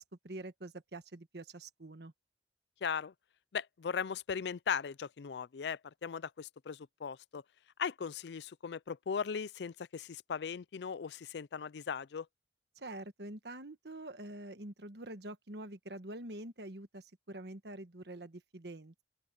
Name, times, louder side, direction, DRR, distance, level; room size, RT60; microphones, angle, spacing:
voice 1, 0.0-2.1 12.8-19.0, right 1 dB, 70° right, 1.4 m, -46 dB
voice 2, 2.8-3.1 3.5-7.4 7.8-12.3, left 6 dB, 75° left, 0.4 m, -38 dB
open air
head